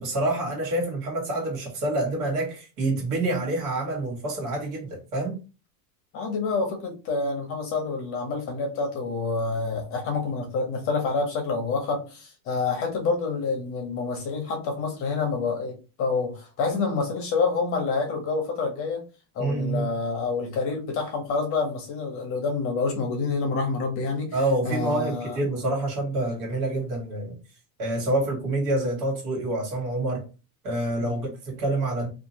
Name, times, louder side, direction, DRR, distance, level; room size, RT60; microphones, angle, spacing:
voice 1, 0.0-5.4 19.4-19.9 24.3-27.4 27.8-30.3 30.6-32.1, right 2 dB, 70° right, 1.7 m, -27 dB
voice 2, 6.1-19.0 19.3-25.4 31.0-31.2, left 4 dB, 30° left, 0.6 m, -28 dB
2.8 x 2.4 x 2.8 m
supercardioid pair, 165°, 47 cm